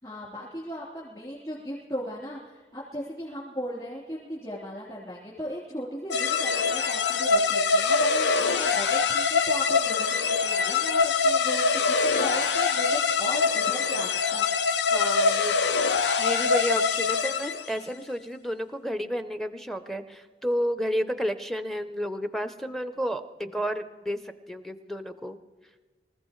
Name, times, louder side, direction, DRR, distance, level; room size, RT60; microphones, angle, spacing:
voice 1, 0.0-14.4, equal, 30° left, -8 dB, 3.5 m, -37 dB
sound 1, 6.1-17.8, left 5 dB, 90° left, 0.6 m, -24 dB
voice 2, 14.9-15.5 16.2-24.2 24.5-25.4, equal, ahead, 9 dB, 0.5 m, -31 dB
25.0 x 15.0 x 3.1 m, 1.3 s
head